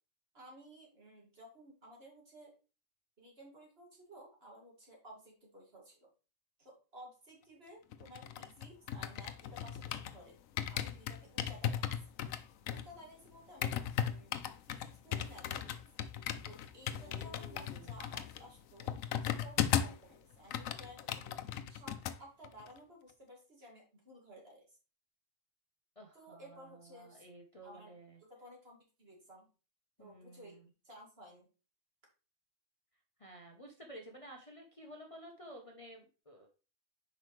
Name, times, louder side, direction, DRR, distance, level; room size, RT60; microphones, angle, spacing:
voice 1, 0.3-2.5 3.2-6.1 6.6-10.4 10.7-11.8 12.2-12.4 12.7-13.7 14.1-15.7 16.5-18.9 19.2-21.3 21.7-24.8 26.1-27.2 27.6-27.9 28.2-29.5 30.0-30.6 30.8-31.5, equal, 50° right, -2 dB, 2.7 m, -55 dB
sound 1, 7.9-10.2 10.6-20.0 20.3-22.2 22.4-22.7, left 9 dB, 90° left, 1.0 m, -37 dB
voice 2, 17.0-18.1 26.0-28.2 30.0-30.6 33.2-36.5, right 1 dB, 30° left, 0 dB, 1.0 m, -53 dB
7.9 x 5.2 x 3.2 m, 0.34 s
omnidirectional pair, 1.3 m